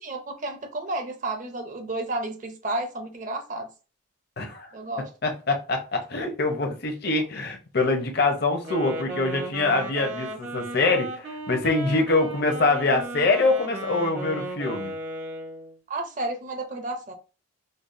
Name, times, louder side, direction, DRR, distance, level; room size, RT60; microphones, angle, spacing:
voice 1, 0.0-3.7 4.7-5.1 15.9-17.1, right 2 dB, 40° right, 0.5 m, -31 dB
voice 2, 4.4-4.7 5.0-14.9, left 3 dB, 50° left, 0.7 m, -24 dB
Wind instrument woodwind instrument, 8.6-15.8, right 1 dB, 60° right, 0.9 m, -35 dB
5.2 x 2.2 x 2.5 m
head